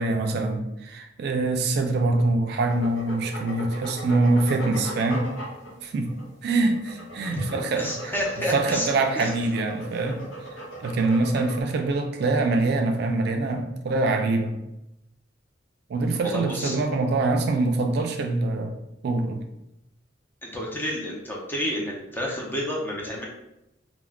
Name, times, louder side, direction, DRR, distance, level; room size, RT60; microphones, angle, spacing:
voice 1, 0.0-5.3 5.8-6.1 6.4-8.1 8.5-10.2 10.8-14.5 15.9-18.8 19.0-19.4, right 2 dB, 60° right, 5 dB, 0.3 m, -24 dB
sound 1, 2.7-11.6, right 1 dB, 80° left, 0.8 m, -38 dB
voice 2, 7.8-8.9 9.1-9.3 16.2-16.8 20.4-23.3, equal, 10° left, -2 dB, 0.5 m, -30 dB
2.3 x 2.1 x 3.4 m, 0.87 s
head